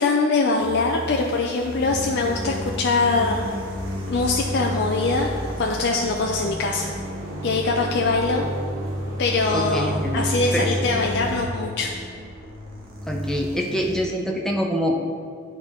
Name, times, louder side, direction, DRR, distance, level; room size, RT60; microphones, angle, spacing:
voice 1, 0.0-3.4 4.1-6.9 7.4-8.5 9.2-11.9, left 3 dB, 55° left, 0 dB, 0.4 m, -23 dB
sound 1, 0.6-14.2, right 1 dB, 45° right, 1.4 m, -37 dB
sound 2, 1.8-11.4, equal, 65° right, 1.3 m, -31 dB
voice 2, 9.5-10.3 10.5-10.7 13.1-15.0, equal, 5° left, 0 dB, 0.6 m, -25 dB
10.0 x 4.4 x 3.7 m, 2.1 s
head